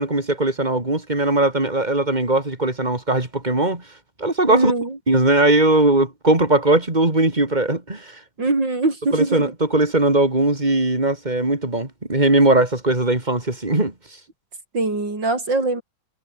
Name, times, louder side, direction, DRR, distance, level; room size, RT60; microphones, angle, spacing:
voice 1, 0.0-3.8 4.2-4.7 5.1-8.2 9.1-13.9, right 2 dB, 20° right, 3.4 m, -19 dB
voice 2, 4.5-5.0 8.4-9.5 14.7-15.8, right 3 dB, 65° right, 6.4 m, -22 dB
omnidirectional pair, 2.2 m